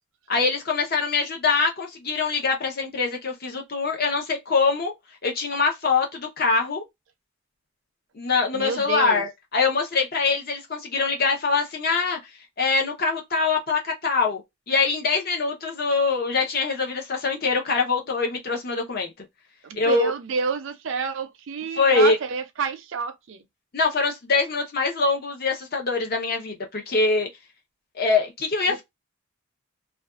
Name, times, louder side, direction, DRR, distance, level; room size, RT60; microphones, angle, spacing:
voice 1, 0.3-4.9 5.2-6.8 8.1-12.2 12.6-14.4 14.7-19.3 19.7-20.1 21.8-22.2 23.7-27.3 27.9-28.8, left 4 dB, 45° left, 0.7 m, -23 dB
voice 2, 8.5-9.3 19.6-23.4 28.7-28.8, right 5 dB, 60° right, 0.4 m, -28 dB
2.4 x 2.3 x 2.3 m
head